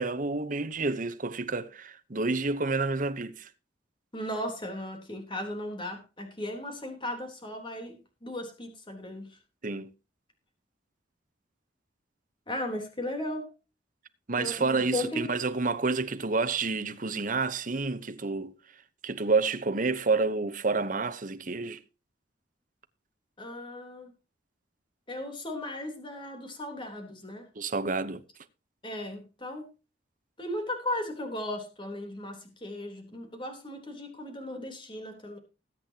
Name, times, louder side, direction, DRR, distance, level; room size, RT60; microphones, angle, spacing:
voice 1, 0.0-3.5 9.6-9.9 14.3-18.5 19.0-21.8 27.6-28.2, right 3 dB, 45° right, 1.0 m, -29 dB
voice 2, 4.1-9.4 12.5-13.5 14.3-15.2 23.4-24.1 25.1-27.5 28.8-29.7 30.4-35.4, left 1 dB, 25° left, 3.5 m, -36 dB
20.5 x 8.5 x 2.9 m
head